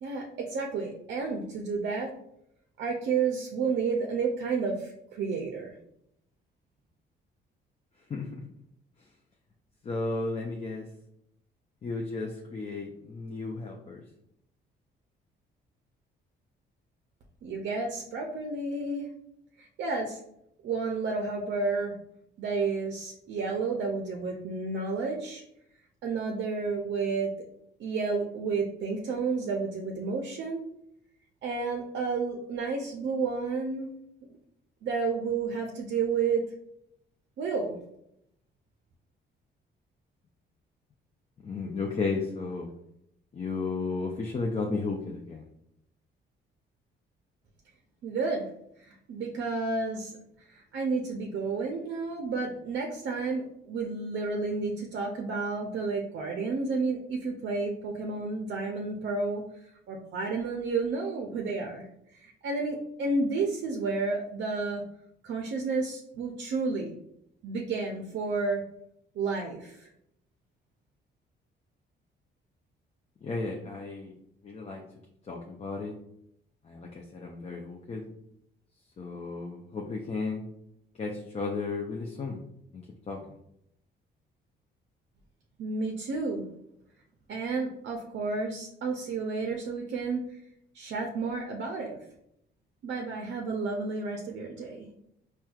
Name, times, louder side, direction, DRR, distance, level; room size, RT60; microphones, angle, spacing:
voice 1, 0.0-2.1 2.8-5.8 17.4-19.1 19.6-20.2 20.6-21.9 22.4-25.4 26.0-27.3 27.8-30.6 31.4-33.9 34.8-36.4 37.4-37.8 48.0-48.5 48.8-50.2 50.5-59.4 59.9-61.9 62.1-64.8 65.2-66.9 67.4-68.6 69.2-69.9 85.6-86.4 87.3-90.2 90.7-92.0 92.8-94.9, right 4 dB, 65° right, 1 dB, 0.5 m, -31 dB
voice 2, 8.1-8.4 9.8-10.9 11.8-14.0 41.4-42.7 43.3-45.5 73.2-74.1 74.4-74.8 75.3-75.9 76.6-78.1 79.0-80.5 81.0-82.4 82.7-83.2, left 3 dB, 30° left, 0 dB, 0.4 m, -34 dB
4.2 x 2.2 x 2.3 m, 0.76 s
cardioid pair, 90°, 20 cm